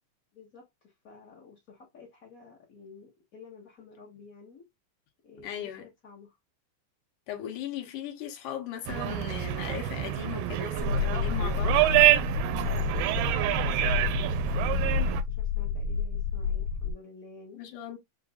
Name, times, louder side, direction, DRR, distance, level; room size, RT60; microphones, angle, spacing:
voice 1, 0.3-4.7 5.2-6.4 12.6-17.6, left 4 dB, 55° left, 0.9 m, -50 dB
voice 2, 5.4-5.9 7.3-11.8 17.5-18.0, left 9 dB, 75° left, 2.5 m, -38 dB
sound 1, 8.9-15.2, right 14 dB, 85° right, 2.2 m, -26 dB
sound 2, 10.8-16.9, left 6 dB, 25° left, 0.9 m, -30 dB
6.7 x 2.6 x 2.3 m
omnidirectional pair, 3.8 m